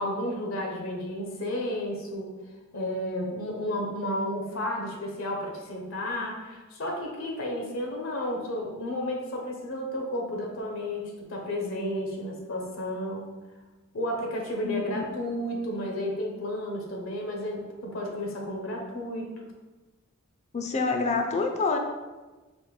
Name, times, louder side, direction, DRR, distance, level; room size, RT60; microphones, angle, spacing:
voice 1, 0.0-2.4 2.7-13.3 13.9-19.3, left 1 dB, 75° left, 1 dB, 0.7 m, -32 dB
voice 2, 14.6-15.0 15.3-15.4 20.5-21.8, left 4 dB, 35° left, 4 dB, 0.4 m, -27 dB
5.1 x 2.1 x 3.1 m, 1.2 s
head